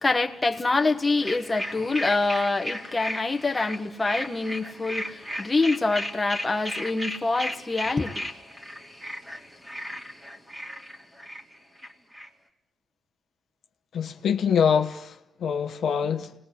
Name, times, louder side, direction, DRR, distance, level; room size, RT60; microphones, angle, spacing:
voice 1, 0.0-8.1, left 3 dB, 20° left, 1.5 m, -25 dB
sound 1, 1.2-12.3, equal, 10° right, 2.7 m, -36 dB
voice 2, 13.9-16.3, left 7 dB, 65° left, 1.0 m, -25 dB
30.0 x 20.0 x 8.3 m
cardioid pair, 130°, 0 cm